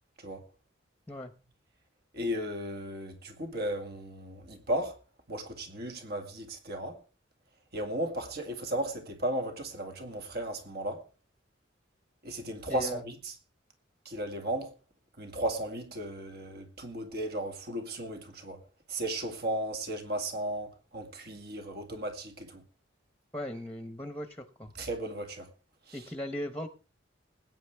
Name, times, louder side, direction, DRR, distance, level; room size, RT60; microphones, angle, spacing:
voice 1, 2.1-5.0 5.3-7.0 7.7-11.0 12.2-13.3 14.1-14.7 15.2-18.6 18.9-22.6 24.8-25.5 25.9-26.0, right 1 dB, 55° right, 2.1 m, -35 dB
voice 2, 12.7-13.0 23.3-24.7 25.9-26.7, equal, 5° left, 0.9 m, -38 dB
20.5 x 9.3 x 3.5 m
head